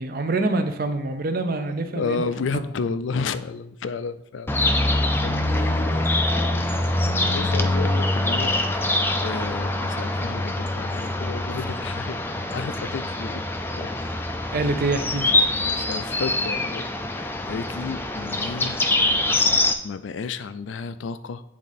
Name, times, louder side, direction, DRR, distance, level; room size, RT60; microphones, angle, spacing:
voice 1, 0.0-2.3 2.5-2.6 14.5-15.3, right 2 dB, 50° right, 8 dB, 0.6 m, -25 dB
voice 2, 1.8-7.0 7.3-8.9 9.2-12.2 12.5-13.4 13.8-13.9 15.7-18.8 19.8-21.4, left 5 dB, 85° left, 13 dB, 0.4 m, -32 dB
sound 1, 4.5-19.7, left 2 dB, 10° left, 0.3 m, -24 dB
8.6 x 3.6 x 4.1 m, 0.79 s
head